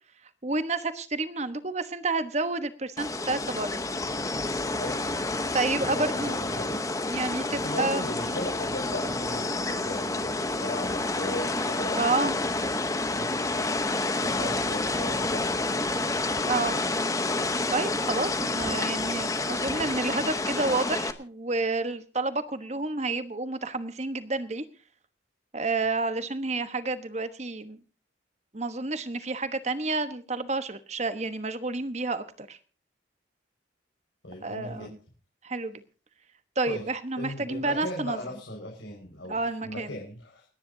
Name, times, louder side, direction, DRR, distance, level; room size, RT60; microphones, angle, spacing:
voice 1, 0.4-3.8 5.5-6.4 7.1-8.1 11.9-12.3 16.4-16.7 17.7-24.6 25.5-27.8 28.5-32.6 34.4-35.0 35.4-35.8 36.6-38.2 39.3-40.0, right 3 dB, 35° right, 11 dB, 1.2 m, -30 dB
sound 1, 3.0-21.1, left 2 dB, 15° left, 0.9 m, -29 dB
voice 2, 5.9-6.8 7.5-12.6 13.1-13.7 14.2-16.0 34.2-34.9 36.7-36.9 37.2-40.5, left 1 dB, 85° left, -1 dB, 5.2 m, -38 dB
29.0 x 10.5 x 2.7 m, 0.37 s
head